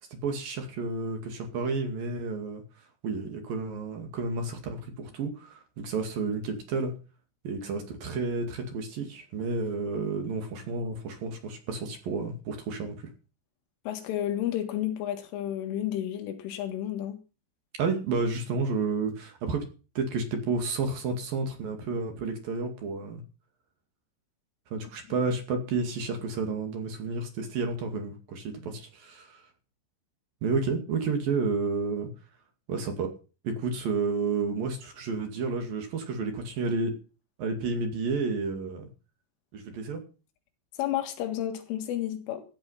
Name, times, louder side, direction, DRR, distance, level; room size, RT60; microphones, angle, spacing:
voice 1, 0.1-2.6 3.0-6.9 7.4-13.1 17.8-19.7 20.0-23.2 24.7-29.5 30.4-32.1 32.7-33.1 33.4-37.0 37.4-38.9 39.5-40.0, right 4 dB, 55° right, 5 dB, 3.7 m, -31 dB
voice 2, 13.9-17.2 40.8-42.4, left 12 dB, 90° left, 5 dB, 4.3 m, -31 dB
15.0 x 10.5 x 5.8 m, 0.34 s
omnidirectional pair, 5.5 m